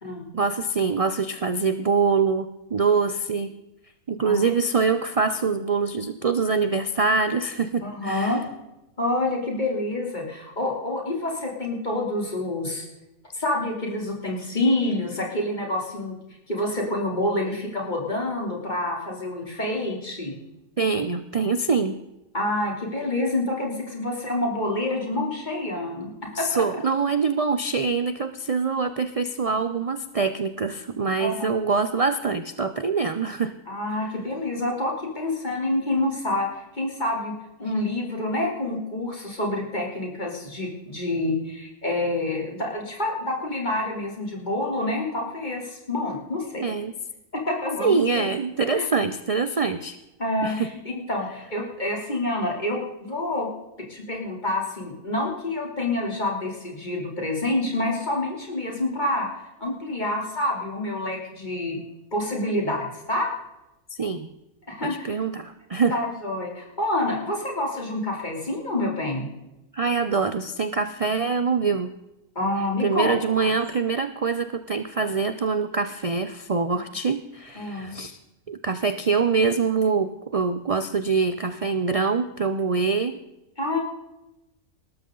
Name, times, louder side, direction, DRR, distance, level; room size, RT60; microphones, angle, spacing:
voice 1, 0.3-3.6 4.1-8.4 20.8-21.9 26.3-33.5 46.6-46.9 47.8-50.0 50.4-50.7 64.0-64.3 64.8-66.0 69.7-71.9 72.8-78.2 78.5-83.2, right 5 dB, 45° right, 10 dB, 0.4 m, -24 dB
voice 2, 7.8-8.4 9.0-12.9 13.3-16.2 16.5-20.3 22.3-26.6 31.2-31.5 33.7-36.5 36.8-37.3 37.6-46.7 47.3-48.3 48.7-48.9 50.2-53.5 53.9-59.3 59.6-61.8 62.1-63.3 64.7-65.2 65.9-69.3 72.4-73.5 77.6-77.9 83.6-83.8, left 1 dB, 30° left, 0 dB, 3.5 m, -27 dB
19.0 x 13.5 x 3.9 m, 0.94 s
omnidirectional pair, 1.5 m